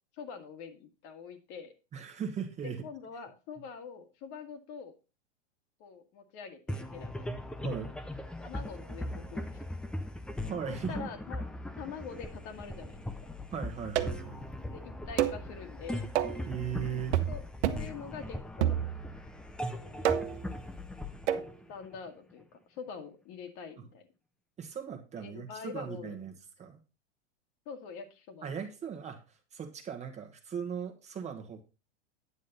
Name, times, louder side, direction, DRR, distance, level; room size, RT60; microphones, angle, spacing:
voice 1, 0.1-1.7 2.6-4.9 5.8-7.3 8.4-9.7 10.7-11.4 11.8-13.0 14.7-16.1 17.3-18.9 19.7-20.1 21.7-24.1 25.2-26.2 27.7-28.6, left 6 dB, 45° left, 6 dB, 2.0 m, -45 dB
voice 2, 1.9-2.8 7.6-7.9 10.5-11.1 13.5-14.5 16.5-17.2 24.6-26.8 28.4-31.6, right 7 dB, 20° right, 4 dB, 1.5 m, -38 dB
sound 1, 6.7-22.3, left 1 dB, 5° left, 0.5 m, -40 dB
sound 2, 14.0-14.3 15.2-15.5 16.2-16.5 17.1-17.4 17.6-17.9 18.6-19.2 20.0-20.5 21.3-21.5, right 11 dB, 75° right, 1.2 m, -29 dB
9.7 x 7.4 x 4.1 m, 0.30 s
supercardioid pair, 140°, 35 cm